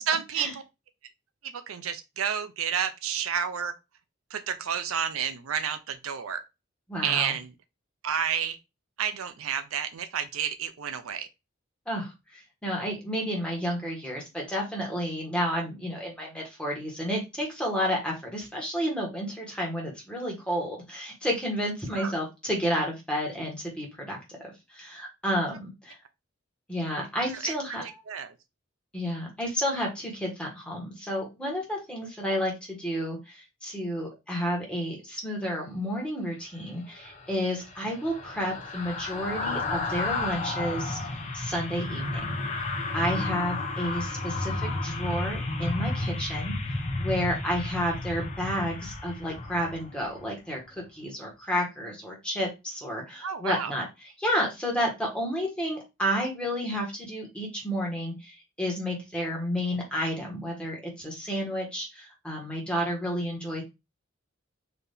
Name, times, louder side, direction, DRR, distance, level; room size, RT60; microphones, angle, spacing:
voice 1, 0.1-0.6 1.4-3.7 4.3-6.4 7.0-7.5 8.0-8.6 9.0-11.3 21.9-22.1 27.3-27.5 27.8-28.3 53.2-53.7, right 8 dB, 90° right, 0.6 m, -30 dB
voice 2, 6.9-7.3 11.9-24.2 24.4-26.0 26.7-28.0 28.9-42.2 42.7-53.8 54.2-63.6, equal, 5° left, 1.4 m, -31 dB
sound 1, 36.9-50.3 50.6-50.8, left 2 dB, 35° left, 0.8 m, -32 dB
4.1 x 2.8 x 3.3 m
head